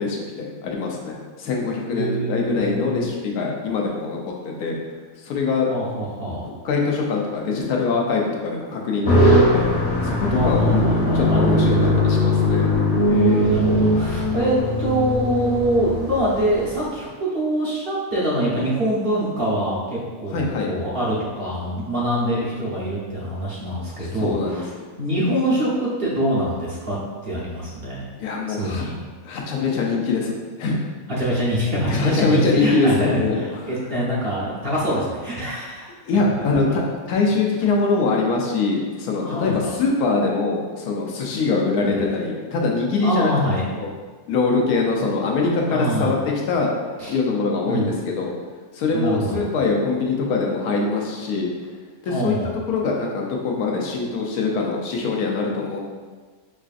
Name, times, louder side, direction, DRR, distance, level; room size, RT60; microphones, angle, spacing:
voice 1, 0.0-4.7 5.2-5.7 6.4-9.7 10.0-12.7 20.3-20.7 24.0-24.6 28.2-28.8 29.2-30.8 31.8-33.7 36.0-36.8 37.1-43.3 43.7-43.9 44.3-46.7 47.1-48.3 48.7-51.5 52.0-52.4 52.7-55.8, left 4 dB, 90° left, -1 dB, 1.1 m, -23 dB
voice 2, 1.9-3.1 5.7-6.5 10.3-11.5 13.1-27.0 27.2-28.1 28.5-29.0 31.1-35.9 39.2-39.7 41.8-42.1 43.0-43.6 45.7-46.2 47.0-47.2 47.7-47.9 48.9-49.5 52.0-52.6, right 1 dB, 50° right, -7 dB, 0.8 m, -24 dB
sound 1, 9.0-16.8, left 1 dB, 55° left, 1.2 m, -20 dB
4.8 x 2.5 x 2.4 m, 1.4 s
omnidirectional pair, 1.6 m